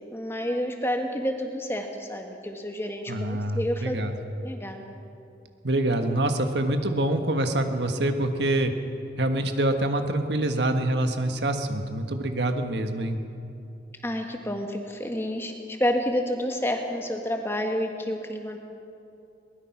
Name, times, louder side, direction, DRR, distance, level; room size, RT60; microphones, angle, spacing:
voice 1, 0.1-4.0 4.4-4.9 14.0-18.6, equal, 15° left, 3 dB, 1.7 m, -29 dB
voice 2, 3.1-4.1 5.6-8.7 9.2-13.2, right 1 dB, 75° right, 6 dB, 1.5 m, -25 dB
22.0 x 20.0 x 6.0 m, 2.7 s
head